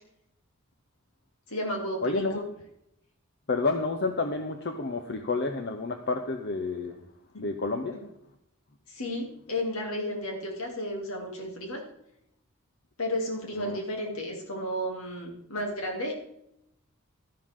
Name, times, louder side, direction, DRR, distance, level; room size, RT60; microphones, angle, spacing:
voice 1, 1.5-2.5 7.9-8.0 8.9-11.8 13.0-16.2, left 1 dB, 70° left, 1 dB, 2.9 m, -33 dB
voice 2, 2.0-2.4 3.5-7.0 7.4-8.0 13.6-13.8, left 3 dB, 50° left, 6 dB, 0.8 m, -30 dB
12.0 x 11.5 x 3.7 m, 0.78 s
head